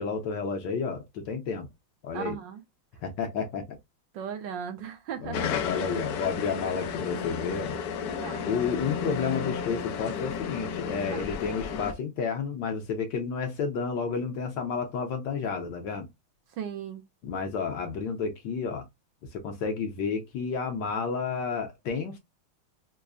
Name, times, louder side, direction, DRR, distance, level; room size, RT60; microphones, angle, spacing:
voice 1, 0.0-1.7 2.0-2.3 3.0-3.8 5.2-7.8 8.4-16.1 17.2-18.8 19.3-22.2, left 5 dB, 65° left, 1.3 m, -31 dB
voice 2, 2.1-2.6 4.1-5.8 8.2-8.5 11.1-11.3 16.5-17.0, right 8 dB, 75° right, 1.2 m, -37 dB
sound 1, 5.3-11.9, left 7 dB, 85° left, 0.8 m, -33 dB
5.3 x 2.1 x 2.4 m
omnidirectional pair, 2.3 m